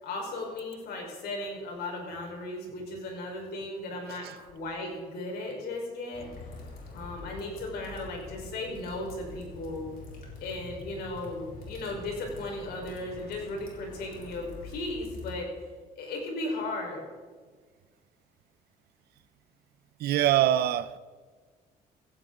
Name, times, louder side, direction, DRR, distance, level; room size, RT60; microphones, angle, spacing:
voice 1, 0.0-6.3 6.9-9.9 10.4-15.5 16.0-17.0, left 2 dB, 85° left, 4.8 m, -36 dB
sound 1, 6.1-15.3, left 3 dB, 65° left, 4.3 m, -45 dB
voice 2, 20.0-21.0, right 12 dB, 80° right, 0.7 m, -24 dB
16.0 x 16.0 x 3.9 m
cardioid pair, 100°, 16 cm